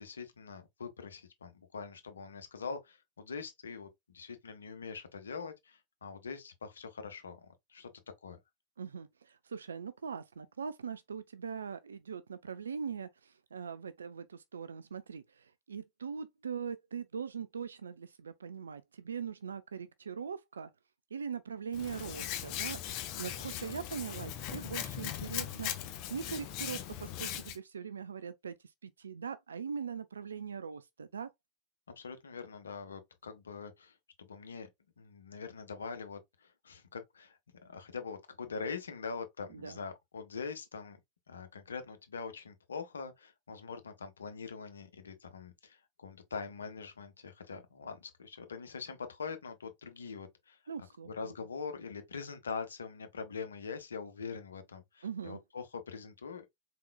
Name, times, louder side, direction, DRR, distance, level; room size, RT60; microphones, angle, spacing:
voice 1, 0.0-3.9 4.1-7.9 8.2-8.4 23.4-23.8 32.0-34.7 35.0-41.0 41.3-50.6 51.0-56.5, left 5 dB, 70° left, 0.8 m, -43 dB
voice 2, 8.8-20.7 21.1-22.8 23.2-25.7 26.1-28.5 28.8-31.3 39.5-39.8 50.7-51.3 55.0-55.4, right 6 dB, 70° right, 0.3 m, -41 dB
Hands, 21.7-27.6, left 11 dB, 40° left, 0.8 m, -39 dB
4.2 x 3.8 x 2.3 m
figure-of-eight pair, 90°, 0 cm